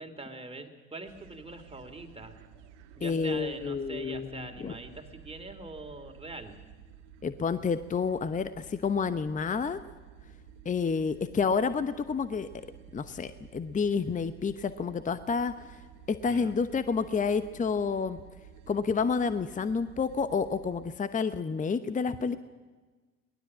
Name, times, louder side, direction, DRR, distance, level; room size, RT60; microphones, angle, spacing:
voice 1, 0.0-2.3 3.0-6.6 16.2-16.5, right 2 dB, 15° right, 6 dB, 3.1 m, -43 dB
sound 1, 1.0-20.9, right 8 dB, 70° right, 1.6 m, -53 dB
voice 2, 3.0-4.8 7.2-9.8 10.6-12.5 12.9-15.8 16.1-18.2 18.7-22.4, left 5 dB, 20° left, 13 dB, 1.0 m, -29 dB
23.0 x 19.0 x 7.6 m, 1.3 s
hypercardioid pair, 65°, 37 cm